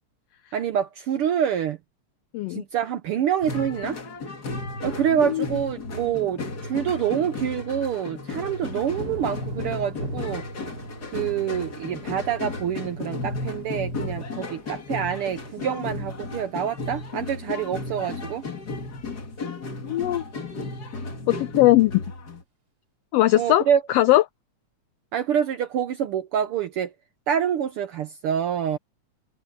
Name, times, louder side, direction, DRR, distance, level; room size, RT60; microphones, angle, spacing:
voice 1, 0.5-1.8 2.5-4.0 4.8-10.5 11.1-18.4 23.3-23.8 25.1-26.9 27.3-28.8, right 9 dB, 75° right, 1.3 m, -26 dB
sound 1, 3.4-22.4, left 2 dB, 35° left, 2.2 m, -34 dB
Thunder / Rain, 8.4-19.3 19.7-20.2, right 2 dB, 35° right, 3.1 m, -46 dB
voice 2, 19.8-20.2 21.3-22.0 23.1-23.6 23.9-24.2, left 16 dB, 85° left, 1.4 m, -19 dB
omnidirectional pair, 3.3 m